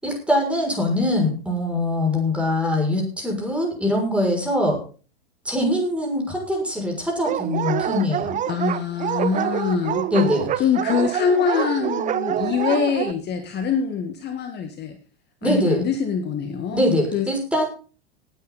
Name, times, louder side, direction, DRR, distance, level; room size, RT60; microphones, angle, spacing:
voice 1, 0.0-4.8 5.4-8.4 10.1-10.6 15.4-15.8 16.7-17.6, left 1 dB, 5° right, 1 dB, 6.4 m, -22 dB
Dog, 7.2-13.1, right 10 dB, 25° right, 0.8 m, -26 dB
voice 2, 8.5-10.1 10.6-15.0 15.4-16.8 17.1-17.3, left 6 dB, 30° left, 6 dB, 1.8 m, -24 dB
19.0 x 9.3 x 4.1 m, 0.37 s
figure-of-eight pair, 90°, 32 cm